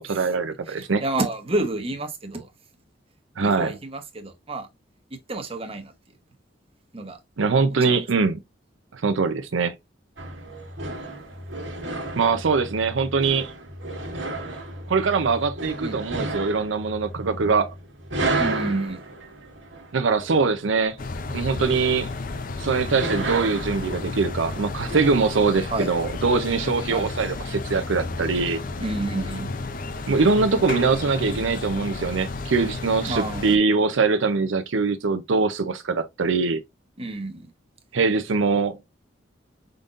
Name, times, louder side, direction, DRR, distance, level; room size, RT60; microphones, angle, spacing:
voice 1, 0.0-1.0 3.4-3.8 7.4-8.4 8.9-9.7 12.2-13.5 14.9-17.7 19.9-21.0 21.3-22.1 22.6-28.6 30.1-36.6 37.9-38.8, right 4 dB, 85° right, 0.6 m, -22 dB
voice 2, 1.0-2.5 3.4-4.7 5.3-5.9 6.9-7.2 7.9-8.0 15.8-16.0 18.4-19.0 25.7-25.9 26.9-27.1 28.8-29.5 33.1-33.4 37.0-37.5, right 2 dB, 30° right, 1.0 m, -29 dB
sound 1, 10.2-25.5, right 2 dB, 70° right, 1.6 m, -33 dB
sound 2, 21.0-33.6, left 3 dB, 45° left, 0.6 m, -32 dB
5.2 x 3.9 x 2.5 m
head